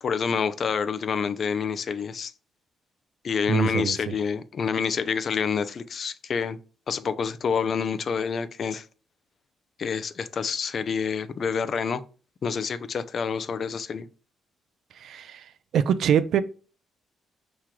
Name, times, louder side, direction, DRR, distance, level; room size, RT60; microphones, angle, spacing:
voice 1, 0.0-2.3 3.2-6.6 6.9-8.9 9.8-12.0 12.4-14.1, left 6 dB, 50° left, 0.5 m, -27 dB
voice 2, 3.5-4.1 15.0-15.5 15.7-16.4, right 8 dB, 70° right, 0.4 m, -24 dB
4.5 x 3.1 x 3.7 m
cardioid pair, 90°, 0 cm